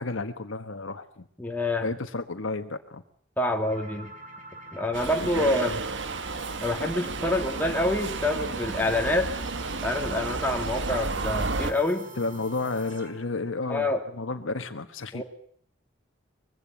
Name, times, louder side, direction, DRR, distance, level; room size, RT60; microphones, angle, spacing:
voice 1, 0.0-1.2 1.8-3.0 5.4-5.5 12.2-15.2, left 3 dB, 85° left, 8 dB, 1.3 m, -32 dB
voice 2, 1.4-1.9 3.4-4.1 4.7-5.8 6.6-9.3 9.7-12.1 13.7-14.0 15.1-15.2, left 1 dB, 10° left, 2 dB, 2.2 m, -27 dB
sound 1, 3.6-13.3, right 2 dB, 45° right, 4.6 m, -46 dB
Subway metro underground, 4.9-11.7, right 3 dB, 65° right, 1.4 m, -32 dB
22.0 x 16.0 x 9.1 m, 0.62 s
head